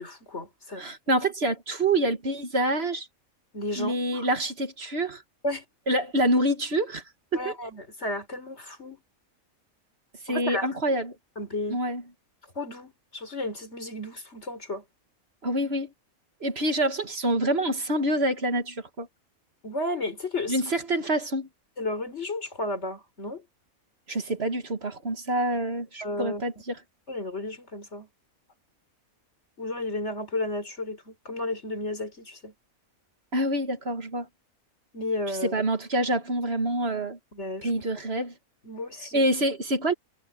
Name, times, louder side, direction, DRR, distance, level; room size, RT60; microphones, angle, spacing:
voice 1, 0.0-1.3 3.5-4.3 5.4-5.6 7.3-9.0 10.3-10.7 11.4-11.8 12.5-14.8 19.6-20.6 21.8-23.4 26.0-26.4 27.1-28.1 29.6-32.5 34.9-35.6 37.3-37.7 38.6-39.2, left 2 dB, 50° left, 4.5 m, -33 dB
voice 2, 0.8-3.1 3.8-5.2 5.9-7.0 7.3-7.5 10.3-11.1 11.7-12.0 15.4-15.9 16.4-19.1 20.5-21.5 24.1-26.8 33.3-34.3 35.5-37.2 37.6-38.3 39.1-39.9, right 1 dB, 45° right, 2.1 m, -26 dB
omnidirectional pair, 1.5 m